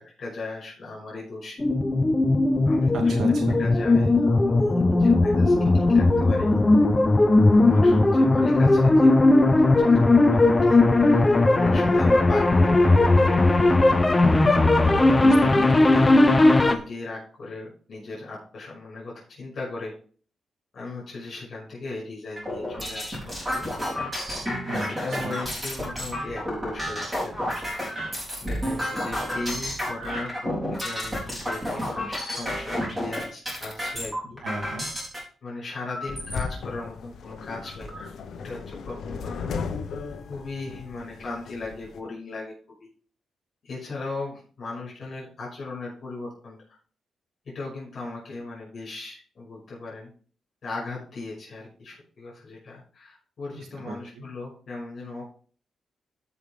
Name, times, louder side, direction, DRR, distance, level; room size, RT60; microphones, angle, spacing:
voice 1, 0.2-1.6 2.7-3.1 3.6-6.6 7.5-9.9 10.3-13.7 14.8-15.6 15.9-19.9 20.7-23.2 23.5-23.6 24.8-27.6 28.4-34.4 35.4-38.1 38.4-39.5 40.3-42.5 42.8-42.9 43.6-46.6 47.5-50.1 50.6-55.3, left 3 dB, 45° left, -5 dB, 5.6 m, -38 dB
sound 1, 1.6-16.8, left 2 dB, 15° left, 0.8 m, -18 dB
voice 2, 2.9-3.6 15.2-15.9 24.7-25.5 34.2-34.9 53.6-54.3, right 2 dB, 75° right, 3 dB, 2.5 m, -34 dB
sound 2, 22.4-35.2 35.9-36.4 37.0-37.1 37.4-38.0, equal, 10° right, 3.9 m, -31 dB
sound 3, 36.1-42.0, left 5 dB, 70° left, 1.1 m, -36 dB
14.5 x 5.6 x 3.6 m, 0.43 s
wide cardioid pair, 135°, 0 cm